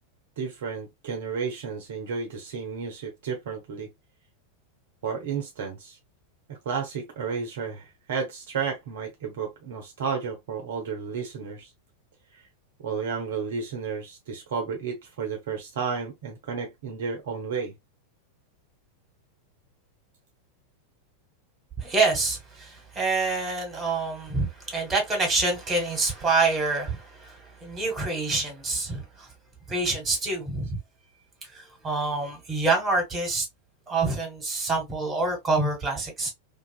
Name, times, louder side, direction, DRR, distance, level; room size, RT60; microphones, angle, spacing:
voice 1, 0.4-3.9 5.0-6.0 6.5-11.7 12.8-17.7, right 6 dB, 55° right, 0.5 m, -32 dB
voice 2, 21.8-29.3 29.7-30.8 31.5-33.5 33.9-36.3, right 3 dB, 15° right, 1.3 m, -26 dB
2.4 x 2.3 x 2.3 m
figure-of-eight pair, 90°, 0 cm